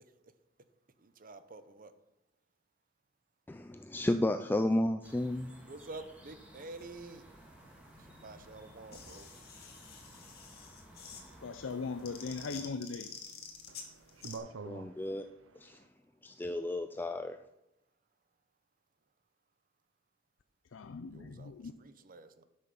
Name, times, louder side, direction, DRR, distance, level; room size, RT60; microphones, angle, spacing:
voice 1, 1.0-1.9 5.6-7.2 8.0-9.3 21.1-22.4, right 2 dB, 45° right, 0.8 m, -49 dB
voice 2, 3.5-5.5 14.7-15.3 15.6-15.8 16.2-17.4, left 1 dB, 10° left, 0.3 m, -32 dB
sound 1, 5.0-12.7, right 1 dB, 5° right, 2.0 m, -56 dB
sound 2, 6.8-14.4, left 6 dB, 55° left, 1.8 m, -50 dB
voice 3, 11.4-13.1 20.7-21.7, left 4 dB, 75° left, 0.5 m, -39 dB
voice 4, 13.7-15.9, right 4 dB, 85° right, 0.6 m, -47 dB
12.0 x 6.4 x 5.4 m
head